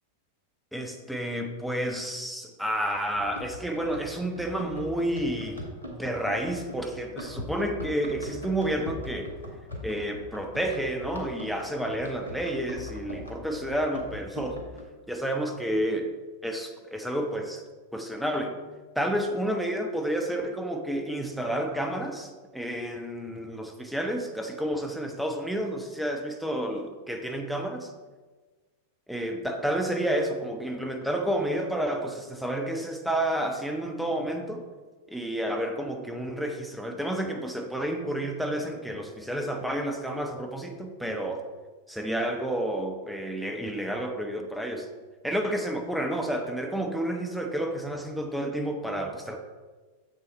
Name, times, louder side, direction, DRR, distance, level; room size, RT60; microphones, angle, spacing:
voice 1, 0.7-5.6 5.9-9.3 9.8-14.6 15.1-16.1 16.4-17.6 17.9-18.6 18.9-27.9 29.1-34.7 35.1-41.4 41.9-44.9 45.2-49.4, right 1 dB, ahead, 3 dB, 1.0 m, -30 dB
Run, 3.1-14.8, left 2 dB, 80° left, 1.5 m, -41 dB
7.4 x 6.5 x 4.2 m, 1.4 s
figure-of-eight pair, 90°, 0 cm